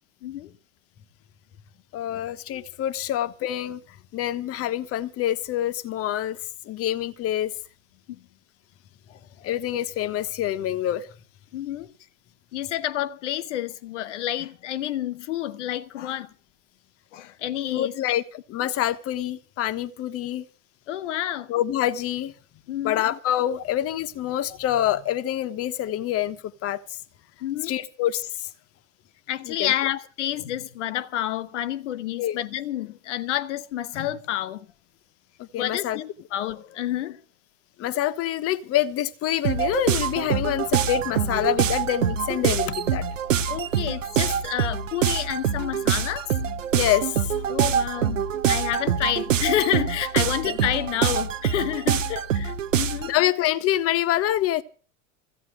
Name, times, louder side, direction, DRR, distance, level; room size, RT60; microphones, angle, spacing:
voice 1, 0.2-0.5 8.1-8.2 9.1-9.5 11.5-11.9 12.5-16.3 17.1-17.9 20.9-21.5 22.7-23.0 27.4-27.7 29.3-34.7 35.6-37.2 43.5-46.3 47.5-53.1, left 12 dB, 70° left, 1.2 m, -29 dB
voice 2, 1.9-3.8 4.1-6.4 6.7-7.5 9.4-11.1 17.7-18.2 18.5-20.4 21.5-22.3 22.8-26.4 26.6-26.8 27.6-28.5 29.5-29.7 32.2-32.4 35.4-36.0 37.8-43.0 46.7-47.4 50.2-50.6 52.1-52.2 53.1-54.6, left 12 dB, 40° left, 1.2 m, -26 dB
sound 1, 39.4-53.2, right 8 dB, 80° right, 0.9 m, -25 dB
15.0 x 8.9 x 8.0 m
hypercardioid pair, 90°, 38 cm